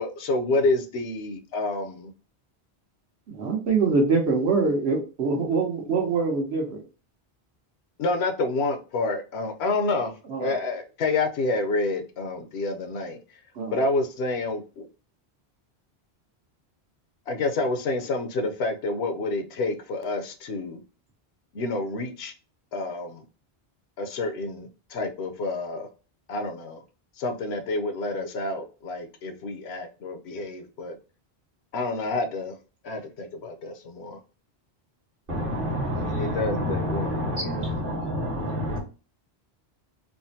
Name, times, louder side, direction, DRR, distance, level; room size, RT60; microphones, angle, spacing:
voice 1, 0.0-2.1 8.0-13.2 13.7-14.9 17.3-20.8 21.5-22.3 22.7-23.2 24.0-25.9 26.3-26.8 27.2-31.0 31.7-32.6 32.8-34.2 35.9-37.5, left 2 dB, 80° left, 6 dB, 0.9 m, -28 dB
voice 2, 3.3-6.8 10.3-10.5 13.5-13.8, right 4 dB, 80° right, 1 dB, 1.2 m, -24 dB
voice 3, 35.3-38.8, equal, 55° right, 0 dB, 1.3 m, -28 dB
3.7 x 2.1 x 2.6 m, 0.34 s
omnidirectional pair, 1.1 m